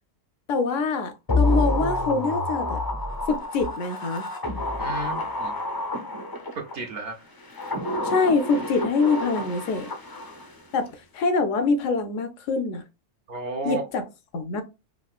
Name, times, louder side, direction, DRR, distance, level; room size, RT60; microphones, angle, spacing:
voice 1, 0.5-2.8 3.3-4.3 8.0-9.9 10.7-10.9 11.1-12.8 13.6-14.0 14.3-14.6, left 4 dB, 70° left, 0.9 m, -24 dB
sound 1, 1.3-6.7 7.4-10.6 10.9-11.0, left 2 dB, 35° left, 0.3 m, -28 dB
voice 2, 4.8-5.6 6.5-7.2 13.3-13.8, right 3 dB, 60° right, 0.7 m, -33 dB
3.6 x 2.5 x 2.3 m
omnidirectional pair, 1.4 m